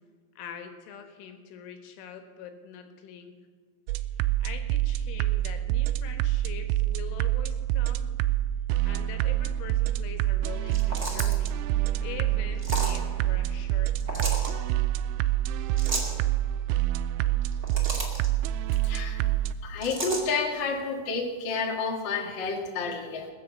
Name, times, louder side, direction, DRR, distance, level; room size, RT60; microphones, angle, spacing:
voice 1, 0.4-3.3 4.1-8.1 8.8-14.5, left 8 dB, 85° left, 6 dB, 3.8 m, -44 dB
sound 1, 3.9-19.5, right 13 dB, 85° right, 2.9 m, -27 dB
sound 2, 10.7-11.5 12.6-13.0 14.0-14.5 15.8-16.2 17.4-18.3 19.8-20.2, right 2 dB, 30° right, 1.2 m, -33 dB
voice 2, 18.8-19.2 19.6-23.3, left 4 dB, 60° left, 1 dB, 1.2 m, -30 dB
20.0 x 7.4 x 7.2 m, 1.5 s
omnidirectional pair, 5.4 m